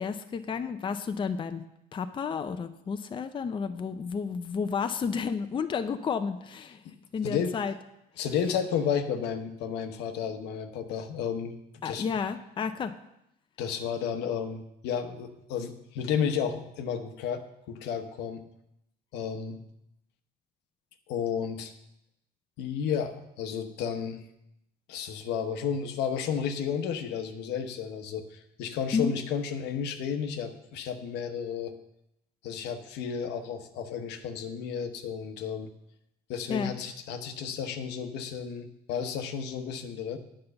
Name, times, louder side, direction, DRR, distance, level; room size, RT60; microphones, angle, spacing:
voice 1, 0.0-1.6 1.9-6.8 7.1-7.7 11.8-12.9 28.9-29.2 36.5-36.7, left 6 dB, 30° left, 8 dB, 0.5 m, -31 dB
voice 2, 7.2-7.5 8.2-11.6 11.8-12.1 13.6-18.4 19.1-19.6 21.1-21.7 22.6-24.2 24.9-31.7 32.4-35.7 36.3-40.2, left 7 dB, 85° left, 7 dB, 1.0 m, -32 dB
8.8 x 5.5 x 6.8 m, 0.83 s
cardioid pair, 110°, 17 cm